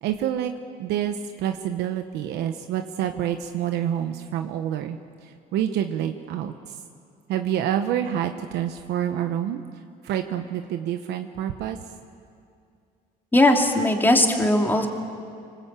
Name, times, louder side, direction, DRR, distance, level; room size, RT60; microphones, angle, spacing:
voice 1, 0.0-0.5 0.8-6.8 7.3-9.6 10.0-11.8, right 10 dB, 80° right, 7 dB, 1.0 m, -27 dB
voice 2, 13.3-14.9, left 1 dB, 10° left, 2 dB, 2.7 m, -19 dB
25.0 x 20.5 x 8.3 m, 2.4 s
cardioid pair, 110°, 17 cm